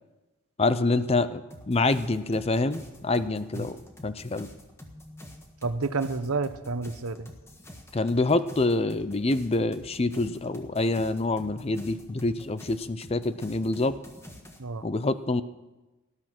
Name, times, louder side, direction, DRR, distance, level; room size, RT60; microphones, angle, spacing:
voice 1, 0.6-3.8 4.0-4.5 7.9-14.0 14.8-15.4, left 2 dB, 25° left, 13 dB, 0.5 m, -26 dB
sound 1, 1.5-14.6, left 1 dB, 10° left, 1.5 m, -48 dB
voice 2, 5.6-7.3 14.6-14.8, right 3 dB, 85° right, 12 dB, 0.9 m, -30 dB
19.0 x 11.5 x 6.0 m, 1.1 s
head